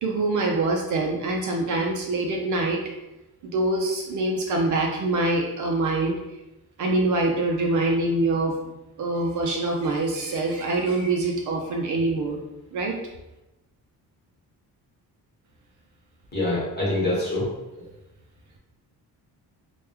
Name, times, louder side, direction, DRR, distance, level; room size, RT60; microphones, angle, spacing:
voice 1, 0.0-2.8 3.4-6.2 6.8-8.6 9.0-12.4 12.7-13.0, right 2 dB, 55° right, 1 dB, 0.4 m, -24 dB
voice 2, 16.3-17.5, left 2 dB, 25° left, -6 dB, 1.2 m, -25 dB
3.3 x 2.3 x 2.9 m, 0.97 s
cardioid pair, 175°, 38 cm